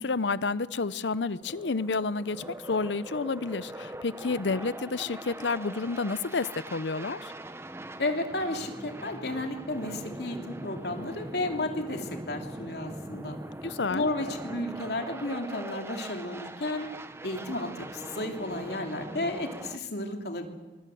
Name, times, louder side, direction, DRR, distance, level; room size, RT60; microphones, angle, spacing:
voice 1, 0.0-7.3 13.6-14.1, left 4 dB, 80° left, 17 dB, 0.7 m, -30 dB
sound 1, 1.4-19.8, right 1 dB, 15° right, 0.9 m, -41 dB
voice 2, 8.0-13.4 13.9-16.9 17.2-20.5, left 1 dB, 65° left, 4 dB, 2.9 m, -33 dB
24.0 x 21.0 x 7.8 m, 1.3 s
head